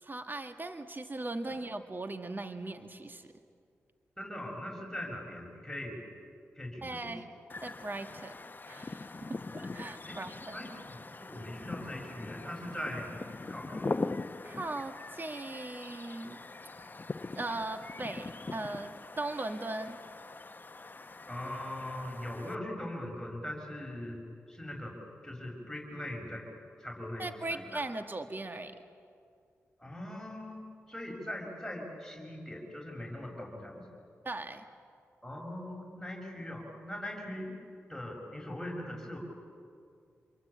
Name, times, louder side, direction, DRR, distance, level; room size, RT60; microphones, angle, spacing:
voice 1, 0.0-3.3 6.8-7.3 7.6-8.3 8.7-10.7 14.4-16.4 17.3-20.0 27.2-28.7 34.2-34.7, right 2 dB, 35° right, 7 dB, 1.9 m, -39 dB
voice 2, 4.2-6.0 6.5-7.1 10.1-10.2 10.5-13.2 13.5-14.0 21.3-24.2 24.5-24.9 25.2-26.4 26.8-27.8 29.8-30.6 30.9-33.9 35.2-37.6 37.9-39.2, left 1 dB, 10° left, -1 dB, 6.7 m, -41 dB
sound 1, 7.5-22.6, left 3 dB, 35° left, 0.9 m, -42 dB
28.0 x 23.0 x 8.7 m, 2.3 s
supercardioid pair, 40°, 6 cm